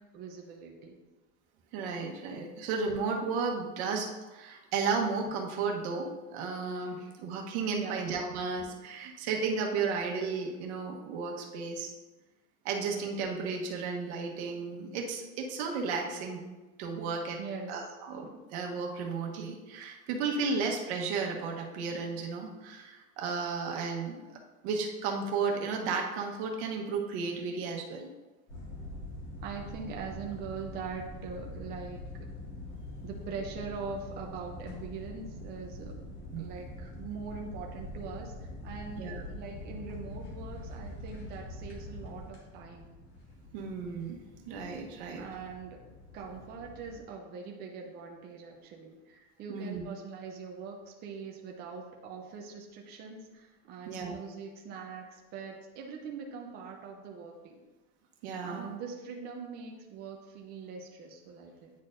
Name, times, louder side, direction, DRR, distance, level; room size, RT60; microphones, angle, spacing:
voice 1, 0.1-1.0 4.6-4.7 7.7-8.1 17.4-17.9 29.4-32.3 33.0-36.1 36.4-42.9 45.2-45.8 46.1-57.6 58.4-61.7, right 5 dB, 30° right, 1 dB, 0.6 m, -42 dB
voice 2, 1.7-11.9 12.6-16.4 16.8-17.4 17.7-24.2 24.6-28.1 36.3-36.4 39.0-39.2 43.5-44.2 44.5-45.3 49.5-49.8 53.9-54.2 58.2-58.7, right 4 dB, 80° right, 1 dB, 1.2 m, -33 dB
sound 1, 28.5-47.0, left 1 dB, 55° left, 1.9 m, -44 dB
9.5 x 4.3 x 2.6 m, 1.2 s
cardioid pair, 180°, 32 cm